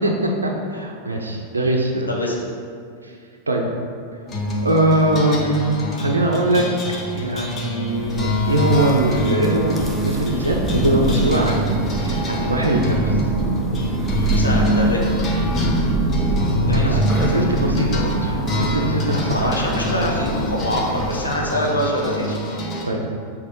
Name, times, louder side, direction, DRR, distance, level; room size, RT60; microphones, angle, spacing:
voice 1, 0.4-2.1 3.0-3.1 3.5-3.6 4.6-6.6 7.1-11.8 12.0-13.2 16.7-19.5 22.8-23.0, right 1 dB, 75° right, 0 dB, 0.6 m, -21 dB
sound 1, 4.3-22.8, equal, 25° left, 0.9 m, -25 dB
Thunder, 7.9-21.5, right 2 dB, 5° right, 0.7 m, -24 dB
voice 2, 14.3-15.1 16.7-17.0 19.3-22.4, left 1 dB, 80° left, -2 dB, 1.0 m, -24 dB
6.1 x 2.9 x 5.4 m, 2.2 s
figure-of-eight pair, 90°, 0 cm